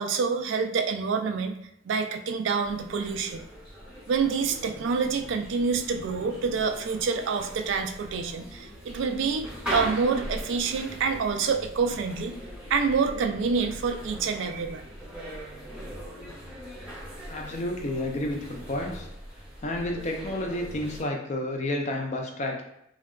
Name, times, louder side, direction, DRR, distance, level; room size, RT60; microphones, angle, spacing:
voice 1, 0.0-1.6 1.9-3.4 4.1-12.4 12.7-14.9, right 5 dB, 70° right, 7 dB, 0.3 m, -27 dB
sound 1, 2.6-21.0, equal, 5° right, 0.7 m, -40 dB
voice 2, 17.3-19.1 19.6-22.6, left 1 dB, 35° left, 2 dB, 0.4 m, -30 dB
3.7 x 2.3 x 2.3 m, 0.79 s
head